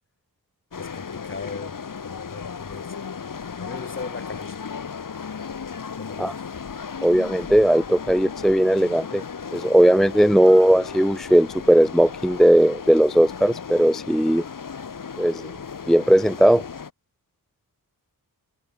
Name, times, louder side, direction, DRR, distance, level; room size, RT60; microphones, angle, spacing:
sound 1, 0.7-16.9, left 6 dB, 60° left, 2.9 m, -35 dB
voice 1, 0.8-3.0 3.6-4.6 6.0-6.4, left 4 dB, 35° left, 3.1 m, -39 dB
voice 2, 7.0-9.2 9.5-14.4 15.2-15.5 15.9-16.6, right 1 dB, ahead, 0.3 m, -18 dB
wide cardioid pair, 160°, 37 cm